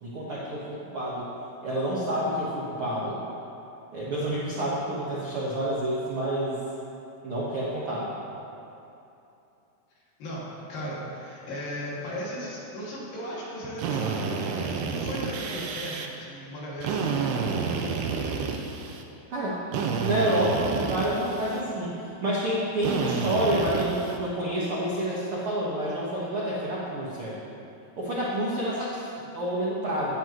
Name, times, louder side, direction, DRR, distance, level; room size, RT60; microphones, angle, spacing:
voice 1, 0.0-1.3 1.6-3.2 3.9-6.6 7.2-8.1 19.3-19.6 20.0-27.4 28.0-30.1, right 1 dB, 65° right, -6 dB, 1.3 m, -28 dB
voice 2, 10.2-17.7, equal, 60° left, -7 dB, 4.0 m, -37 dB
Drill, 13.8-16.1 16.8-19.0 19.7-21.6 22.8-24.2, right 5 dB, 85° right, 2.8 m, -30 dB
17.0 x 10.5 x 3.1 m, 2.8 s
omnidirectional pair, 4.7 m